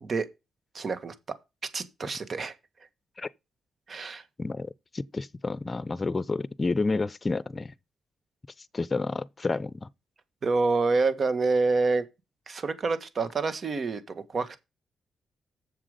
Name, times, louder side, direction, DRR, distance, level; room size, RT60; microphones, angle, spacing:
voice 1, 0.7-1.1 1.7-2.5 3.9-4.2 10.4-12.0 12.5-14.6, right 3 dB, 55° right, 1.7 m, -27 dB
voice 2, 4.4-7.7 8.6-9.9, left 3 dB, 35° left, 0.6 m, -30 dB
7.5 x 7.0 x 5.1 m
supercardioid pair, 60°, 0 cm